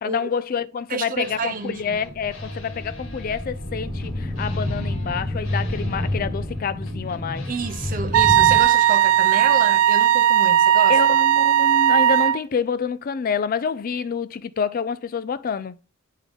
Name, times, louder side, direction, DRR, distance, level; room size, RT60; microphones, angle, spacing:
voice 1, 0.0-7.5 10.9-15.8, left 6 dB, 45° left, 0.3 m, -27 dB
voice 2, 0.9-2.0 7.5-11.0, right 4 dB, 40° right, 0.6 m, -29 dB
sound 1, 1.2-9.9, left 1 dB, 70° left, 2.0 m, -43 dB
sound 2, 1.8-8.6, left 1 dB, 5° left, 1.0 m, -29 dB
Wind instrument woodwind instrument, 8.1-12.4, right 11 dB, 90° right, 0.3 m, -17 dB
9.7 x 3.6 x 3.5 m
head